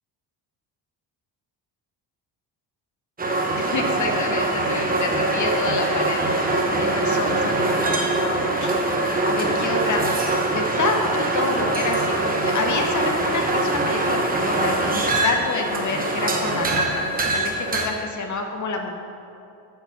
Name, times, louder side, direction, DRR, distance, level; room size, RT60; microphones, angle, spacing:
sound 1, 3.2-17.9, right 2 dB, 20° right, 0.9 m, -23 dB
voice 1, 3.7-6.2 6.7-8.8 9.2-10.0 10.5-17.0 17.3-18.9, left 4 dB, 40° left, 4 dB, 0.8 m, -28 dB
8.7 x 4.9 x 6.8 m, 2.7 s
cardioid pair, 130°, 43 cm